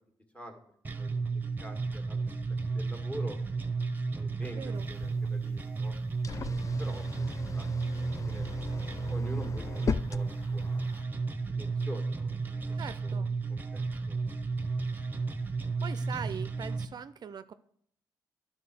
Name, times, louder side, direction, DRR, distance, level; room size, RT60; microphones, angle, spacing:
voice 1, 0.8-2.2 2.7-3.4 4.1-6.0 6.4-8.5 9.1-10.9 11.4-14.2, equal, 15° left, 3 dB, 1.9 m, -46 dB
sound 1, 0.8-16.8, right 4 dB, 20° right, 0.9 m, -33 dB
voice 2, 4.4-4.9 12.7-13.3 15.8-17.5, right 7 dB, 55° right, 13 dB, 0.4 m, -41 dB
sound 2, 4.8-11.0, left 5 dB, 40° left, 0.4 m, -39 dB
11.0 x 3.9 x 6.0 m, 0.68 s
cardioid pair, 75°, 9 cm